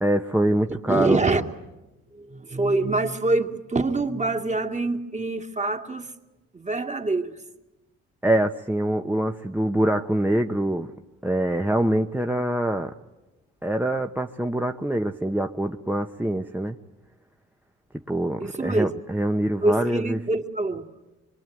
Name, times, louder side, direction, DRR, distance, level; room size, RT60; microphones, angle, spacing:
voice 1, 0.0-1.2 8.2-10.9 11.2-12.9 13.6-16.8 18.1-20.2, right 1 dB, 5° right, 3 dB, 1.1 m, -24 dB
voice 2, 0.7-1.4 2.1-6.1 6.5-7.3 18.4-18.9 19.6-20.8, right 2 dB, 25° right, 6 dB, 2.4 m, -25 dB
25.0 x 23.0 x 9.3 m, 1.1 s
cardioid pair, 90°, 30 cm